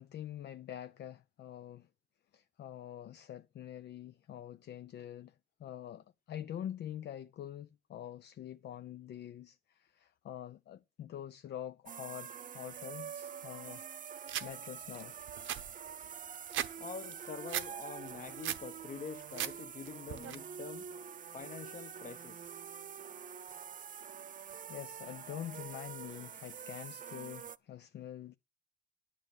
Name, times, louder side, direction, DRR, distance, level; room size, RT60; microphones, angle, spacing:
voice 1, 0.0-1.9 2.3-5.3 5.6-13.8 14.2-15.2 24.7-28.4, left 11 dB, 60° left, 0.5 m, -45 dB
sound 1, 11.9-27.6, right 8 dB, 40° right, 0.6 m, -46 dB
sound 2, 14.3-14.5 14.9-15.0 15.3-16.7 17.0-17.7 18.1-18.7 19.1-19.5 19.8-20.3, right 11 dB, 80° right, 0.9 m, -37 dB
voice 2, 16.8-20.9 21.3-22.4, left 5 dB, 40° left, 1.0 m, -46 dB
10.0 x 6.4 x 7.2 m
cardioid pair, 90°, 20 cm